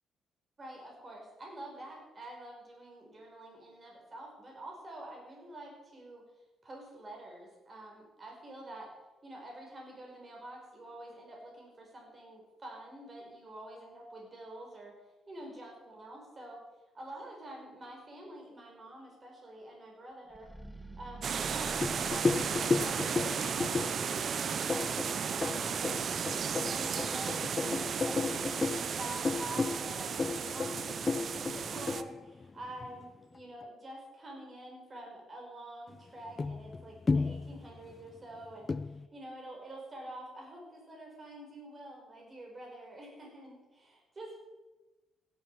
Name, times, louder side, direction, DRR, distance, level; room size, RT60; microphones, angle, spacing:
voice 1, 0.6-6.3 6.6-8.9 9.2-15.0 15.3-16.6 16.9-20.5 20.9-26.2 26.5-28.6 28.9-44.4, right 1 dB, 30° right, -1 dB, 5.2 m, -47 dB
sound 1, 20.3-23.6, right 1 dB, ahead, 1.3 m, -49 dB
sound 2, 21.2-32.0, right 7 dB, 50° right, 0.7 m, -34 dB
sound 3, 21.8-33.0 35.9-36.0 36.4-38.1 38.7-39.1, left 4 dB, 25° left, 0.4 m, -34 dB
16.0 x 12.0 x 4.9 m, 1.1 s
cardioid pair, 115°, 0 cm